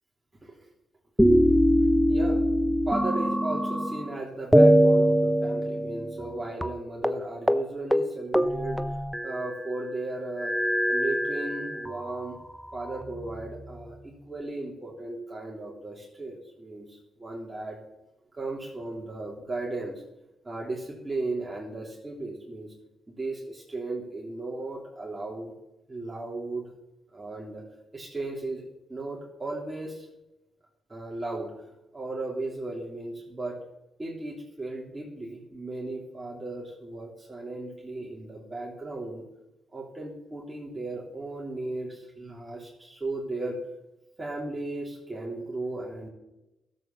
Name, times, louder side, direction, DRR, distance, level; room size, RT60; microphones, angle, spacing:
sound 1, 1.2-4.1 4.5-6.3 6.6-6.7 7.0-7.2 7.5-7.6 7.9-9.6 10.4-12.0 12.7-13.6, equal, ahead, 0.9 m, -23 dB
voice 1, 2.1-2.4 2.9-10.5 10.9-12.4 12.7-17.8 18.3-20.0 20.4-22.7 23.1-25.5 25.9-26.7 27.1-27.6 27.9-28.6 28.9-30.1 30.9-31.5 31.9-33.6 34.0-39.2 39.7-43.6 44.2-46.1, right 2 dB, 25° right, -3 dB, 3.1 m, -36 dB
12.5 x 7.7 x 7.0 m, 0.94 s
supercardioid pair, 55°, 0 cm